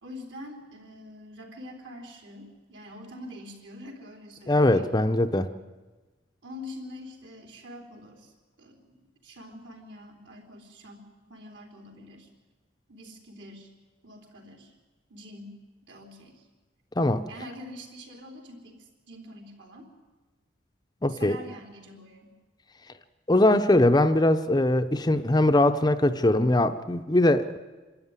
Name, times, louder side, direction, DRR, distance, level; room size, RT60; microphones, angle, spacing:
voice 1, 0.0-4.9 6.4-8.3 8.6-9.0 9.2-11.0 11.3-12.3 12.9-13.7 14.0-14.8 15.1-15.6 15.9-16.5 17.3-19.9 21.1-22.3, left 1 dB, 75° right, 1 dB, 3.8 m, -45 dB
voice 2, 4.5-5.5 17.0-17.2 21.0-21.4 23.3-27.6, left 1 dB, 20° left, 8 dB, 0.6 m, -21 dB
26.0 x 13.0 x 9.7 m, 1.3 s
head